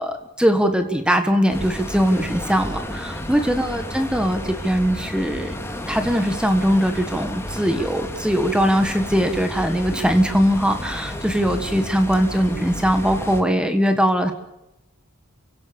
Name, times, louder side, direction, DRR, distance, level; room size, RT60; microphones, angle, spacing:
voice 1, 0.0-5.5 5.9-14.3, equal, 5° right, 7 dB, 1.6 m, -20 dB
sound 1, 1.5-13.4, left 1 dB, 10° left, 2.6 m, -32 dB
29.5 x 17.0 x 7.0 m, 0.92 s
head